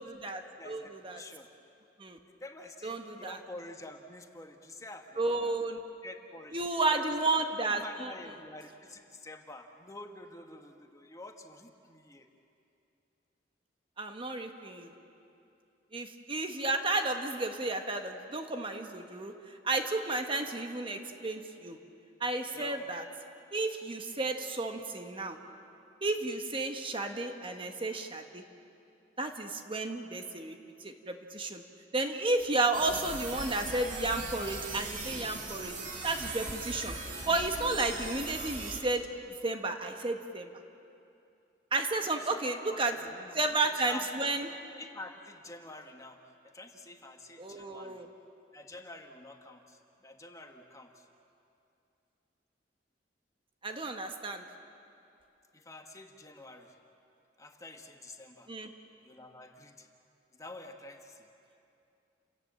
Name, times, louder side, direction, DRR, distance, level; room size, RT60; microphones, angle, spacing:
voice 1, 0.0-1.2 2.0-2.2 2.8-3.4 5.2-5.8 6.5-8.1 14.0-14.9 15.9-21.8 22.2-23.0 23.5-25.4 26.0-28.4 29.2-30.6 30.8-31.6 31.9-35.7 36.0-36.9 37.3-39.1 39.4-40.5 41.7-43.0 43.3-44.5 47.4-48.1 53.6-54.4 58.5-58.7, right 2 dB, 30° right, 5 dB, 1.3 m, -32 dB
voice 2, 0.6-1.5 2.3-5.6 6.0-6.6 6.9-7.0 7.7-12.3 22.5-22.9 42.1-43.4 43.7-44.3 44.7-48.0 48.5-50.9 55.5-56.7 57.4-58.5 59.0-59.9 60.4-61.3, left 2 dB, 20° left, 4 dB, 1.4 m, -48 dB
sound 1, 32.7-38.8, right 3 dB, 45° right, 2.9 m, -39 dB
30.0 x 17.5 x 7.6 m, 2.7 s
head